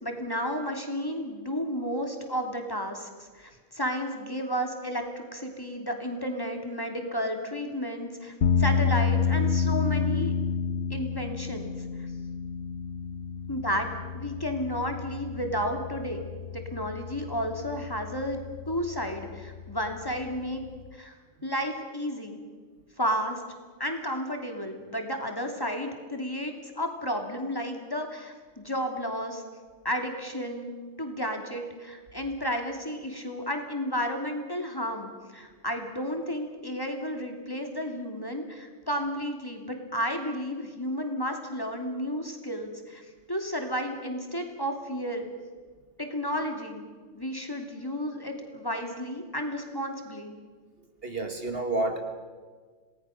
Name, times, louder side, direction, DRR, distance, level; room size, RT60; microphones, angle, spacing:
voice 1, 0.0-10.3 10.9-11.7 13.5-13.9 14.1-20.6 20.9-21.2 21.4-22.4 23.0-23.4 23.8-29.4 29.8-30.7 31.0-45.3 46.0-46.8 47.1-50.4, equal, 15° left, 3 dB, 2.7 m, -32 dB
sound 1, 8.4-20.9, left 6 dB, 60° left, 1.2 m, -30 dB
voice 2, 51.0-52.0, right 2 dB, 50° right, 6 dB, 1.9 m, -29 dB
28.0 x 19.0 x 6.5 m, 1.5 s
omnidirectional pair, 1.3 m